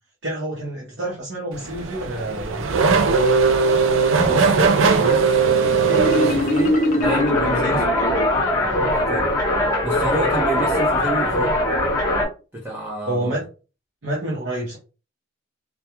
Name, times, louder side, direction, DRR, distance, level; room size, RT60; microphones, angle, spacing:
voice 1, 0.2-3.1 7.6-7.8 13.1-13.5 14.0-14.8, right 1 dB, 60° right, -4 dB, 0.8 m, -28 dB
Race car auto racing / Accelerating revving vroom, 1.5-7.1, right 5 dB, 80° right, 0.4 m, -19 dB
voice 2, 4.2-7.8 8.5-9.3 9.8-11.6 12.5-13.3, right 1 dB, 10° right, -5 dB, 0.5 m, -29 dB
Marimba xylophone, 5.9-8.6, left 1 dB, 40° left, 0.4 m, -23 dB
sound 1, 7.0-12.3, left 1 dB, 15° left, 0.9 m, -21 dB
2.2 x 2.2 x 2.9 m, 0.34 s
head